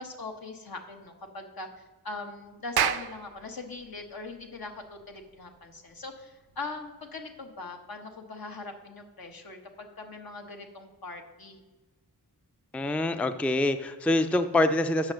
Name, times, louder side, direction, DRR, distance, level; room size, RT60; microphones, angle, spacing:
voice 1, 0.0-11.6, left 3 dB, 70° left, 3 dB, 1.3 m, -41 dB
Clapping, 2.5-7.4, right 9 dB, 80° right, 0.5 m, -34 dB
voice 2, 12.7-15.1, left 2 dB, 5° left, 9 dB, 0.4 m, -25 dB
8.1 x 6.4 x 6.4 m, 1.3 s
wide cardioid pair, 100°, 37 cm